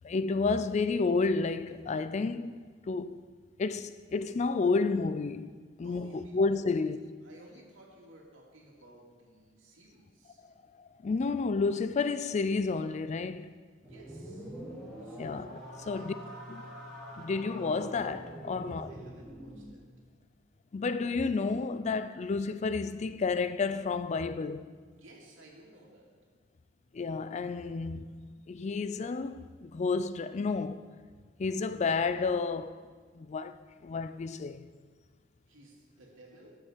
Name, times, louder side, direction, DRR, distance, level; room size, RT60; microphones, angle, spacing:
voice 1, 0.0-2.6 2.9-3.2 3.6-5.5 5.8-7.0 11.0-13.5 15.2-15.6 15.9-16.1 16.5-16.6 17.2-18.9 20.7-24.7 26.9-30.8 31.4-32.8 33.1-34.7, left 4 dB, 35° left, 0.4 m, -31 dB
voice 2, 5.8-6.9 7.2-10.4 13.8-14.5 15.0-15.4 15.8-16.1 16.6-16.9 18.6-19.8 24.9-26.1 35.5-36.6, right 1 dB, 90° right, 2.5 m, -55 dB
sound 1, 13.8-19.7, equal, 5° left, 3.0 m, -44 dB
12.0 x 7.2 x 5.0 m
head